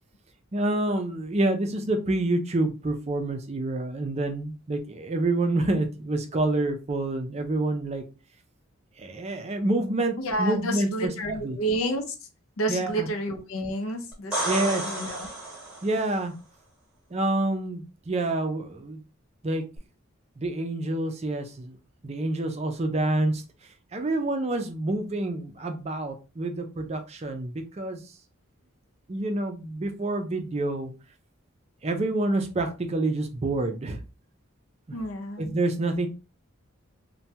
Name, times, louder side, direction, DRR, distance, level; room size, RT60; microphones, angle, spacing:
voice 1, 0.5-8.0 9.0-11.1 11.4-11.6 12.7-13.1 14.4-14.8 15.8-16.3 17.1-19.0 19.4-19.6 20.4-21.8 22.0-23.4 23.9-28.0 29.1-30.9 31.8-34.0 35.4-36.1, right 2 dB, 30° right, 6 dB, 0.4 m, -27 dB
voice 2, 10.2-12.1 12.6-15.3 34.9-35.6, right 1 dB, 80° left, 5 dB, 0.7 m, -30 dB
sound 1, 14.1-16.0 19.8-19.9, right 1 dB, 5° right, 1.0 m, -31 dB
3.2 x 2.2 x 2.7 m, 0.31 s
head